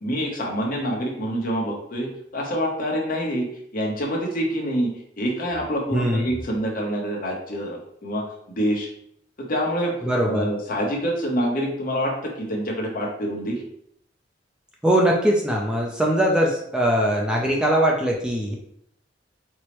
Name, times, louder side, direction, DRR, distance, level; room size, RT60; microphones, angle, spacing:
voice 1, 0.0-3.5 3.7-4.9 5.2-8.9 9.4-10.0 10.2-13.6, equal, 50° left, -1 dB, 0.8 m, -26 dB
voice 2, 5.9-6.3 10.0-10.5 14.8-18.5, right 1 dB, 5° right, -2 dB, 0.4 m, -21 dB
4.5 x 2.0 x 3.0 m, 0.70 s
head